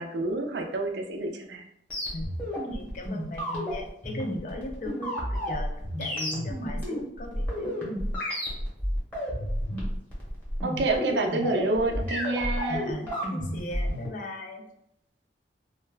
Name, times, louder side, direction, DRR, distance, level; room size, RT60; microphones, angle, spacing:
voice 1, 0.0-1.7 10.6-12.9, right 2 dB, 70° right, 3 dB, 0.4 m, -28 dB
sound 1, 1.9-14.1, equal, 10° left, 0.7 m, -31 dB
voice 2, 2.7-5.7 6.0-7.7 12.7-14.7, left 2 dB, 45° left, 2 dB, 0.4 m, -38 dB
2.2 x 2.1 x 3.2 m, 0.76 s
head